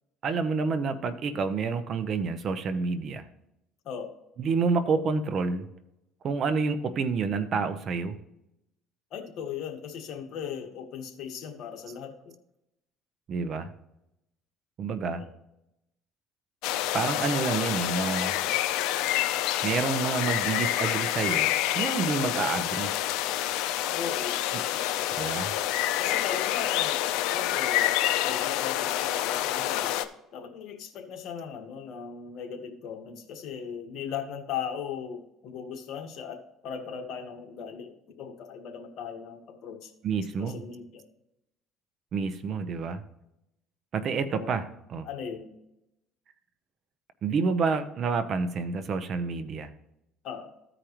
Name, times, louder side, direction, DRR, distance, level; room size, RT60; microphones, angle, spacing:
voice 1, 0.2-3.2 4.4-5.7 6.2-8.1 13.3-13.7 14.8-15.2 16.9-18.3 19.6-22.9 24.5-24.6 25.2-25.5 40.0-40.6 42.1-43.0 43.9-45.1 47.2-49.7, right 4 dB, 45° right, 11 dB, 0.9 m, -28 dB
voice 2, 3.8-4.2 9.1-12.3 15.2-15.3 23.9-24.4 25.0-25.1 26.0-27.0 27.3-30.0 30.3-39.9 40.4-41.0 44.3-44.5 45.0-45.5 50.2-50.5, left 7 dB, 60° left, 3 dB, 1.6 m, -38 dB
sound 1, 16.6-30.1, left 13 dB, 80° left, 0.6 m, -27 dB
14.5 x 5.0 x 3.1 m, 0.85 s
cardioid pair, 105°, 0 cm